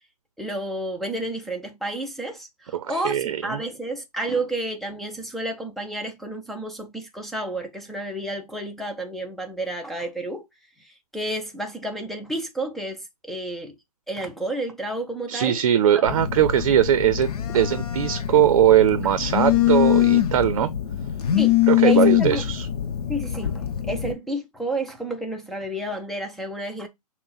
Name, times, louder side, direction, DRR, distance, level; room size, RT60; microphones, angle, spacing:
voice 1, 0.4-10.5 10.8-13.8 14.1-15.6 15.9-16.2 16.5-16.6 17.5-17.6 21.3-22.4 23.1-26.9, right 1 dB, ahead, 0.3 m, -31 dB
voice 2, 2.7-3.6 15.3-20.7 21.7-22.7, right 10 dB, 50° right, 0.6 m, -20 dB
Telephone, 16.1-24.1, left 13 dB, 70° left, 0.8 m, -23 dB
6.0 x 2.1 x 4.0 m
hypercardioid pair, 140°, 20 cm